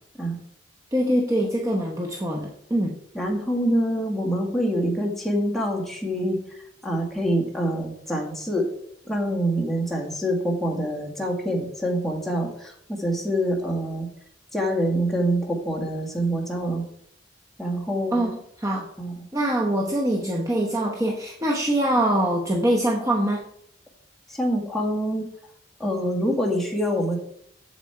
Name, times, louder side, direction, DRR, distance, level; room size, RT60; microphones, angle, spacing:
voice 1, 0.9-2.9 18.1-18.9 19.3-23.4, right 1 dB, 20° right, -1 dB, 0.8 m, -24 dB
voice 2, 3.1-8.6 9.0-14.1 14.5-16.8 17.6-18.3 19.0-19.2 24.3-25.2 25.8-27.2, equal, ahead, -2 dB, 1.7 m, -26 dB
7.4 x 7.2 x 4.3 m, 0.70 s
head